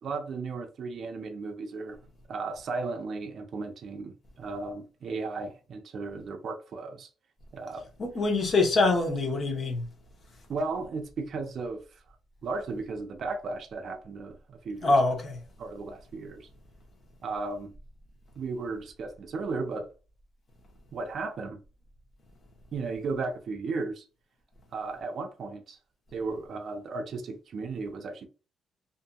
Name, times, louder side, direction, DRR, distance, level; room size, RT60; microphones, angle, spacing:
voice 1, 0.0-2.0 2.3-7.1 7.5-7.9 10.5-11.9 12.4-15.0 15.6-16.5 17.2-17.7 18.4-19.9 20.9-21.6 22.7-24.0 24.7-25.8 26.1-28.3, right 3 dB, 55° right, 0.5 m, -35 dB
voice 2, 8.0-9.8 14.8-15.4, left 3 dB, 45° left, 0.9 m, -24 dB
2.6 x 2.6 x 2.3 m
cardioid pair, 90°, 0 cm